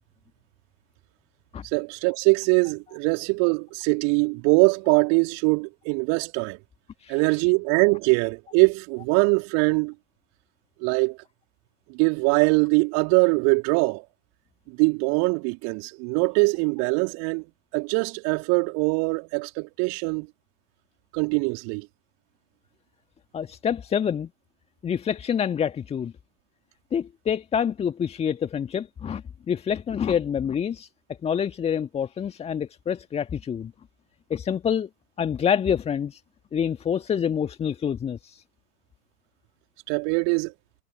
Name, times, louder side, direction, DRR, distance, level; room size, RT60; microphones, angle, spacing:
voice 1, 1.7-6.6 7.1-9.9 10.8-11.2 11.9-14.0 14.7-17.4 17.7-20.3 21.1-21.9 39.9-40.5, right 37 dB, 35° right, 3.4 m, -22 dB
voice 2, 23.3-24.3 24.8-26.1 26.9-30.9 31.2-33.7 34.3-34.9 35.2-36.2 36.5-38.4, left 8 dB, 10° left, 1.7 m, -27 dB
figure-of-eight pair, 105°, 48 cm